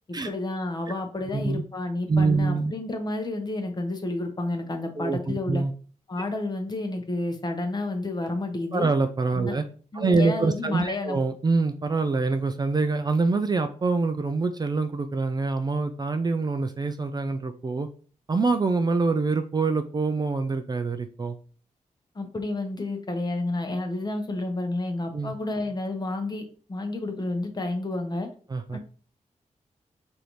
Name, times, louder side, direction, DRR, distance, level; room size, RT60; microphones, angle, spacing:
voice 1, 0.1-5.6 6.1-8.9 9.4-9.5 9.9-11.2 22.1-28.3 28.7-28.8, left 2 dB, 30° left, 5 dB, 0.8 m, -30 dB
voice 2, 1.3-1.6 2.1-2.7 5.0-5.7 8.7-9.6 9.9-17.9 18.3-21.4 25.1-25.3 28.5-28.8, right 3 dB, 30° right, 8 dB, 0.3 m, -25 dB
4.9 x 2.6 x 3.0 m, 0.41 s
wide cardioid pair, 105°, 14 cm